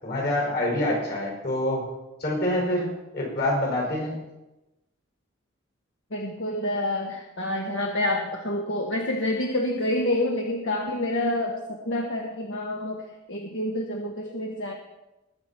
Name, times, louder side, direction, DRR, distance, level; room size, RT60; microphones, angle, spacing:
voice 1, 0.0-1.9 2.2-4.1, left 1 dB, 55° left, -2 dB, 5.7 m, -26 dB
voice 2, 6.1-14.7, left 1 dB, 75° left, 1 dB, 1.3 m, -28 dB
20.5 x 7.2 x 4.5 m, 1.0 s
head